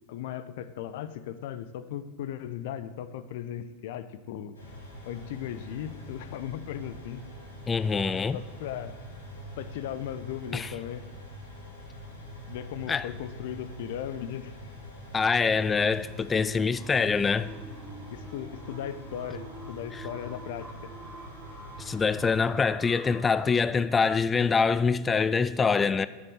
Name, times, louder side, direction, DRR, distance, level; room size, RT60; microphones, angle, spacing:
voice 1, 0.1-4.6 5.0-7.2 8.3-9.0 9.6-11.0 12.5-14.5 17.0-17.1 18.1-20.9, left 10 dB, 65° left, 0.7 m, -37 dB
sound 1, 4.5-22.4, equal, 90° left, 3.2 m, -45 dB
voice 2, 7.7-8.4 10.5-10.7 12.9-13.1 15.1-17.5 19.9-20.0 21.8-26.1, left 5 dB, 20° left, 0.5 m, -25 dB
sound 2, 16.7-23.5, right 2 dB, 15° right, 2.5 m, -47 dB
8.7 x 7.2 x 7.9 m
hypercardioid pair, 90°, 0 cm